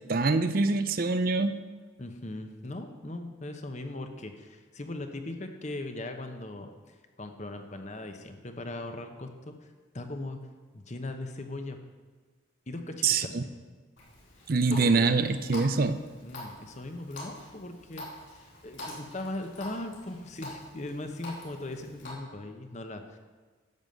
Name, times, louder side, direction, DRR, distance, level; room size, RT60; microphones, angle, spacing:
voice 1, 0.1-1.6 13.0-13.4 14.5-16.0, right 4 dB, 45° right, 11 dB, 0.5 m, -25 dB
voice 2, 2.0-9.5 9.9-10.4 10.7-11.8 12.7-13.5 14.7-15.2 16.2-23.2, left 2 dB, 35° left, 6 dB, 1.0 m, -39 dB
Water tap faucet, 14.0-22.1, left 1 dB, 70° left, 4.1 m, -45 dB
11.0 x 7.1 x 7.8 m, 1.4 s
head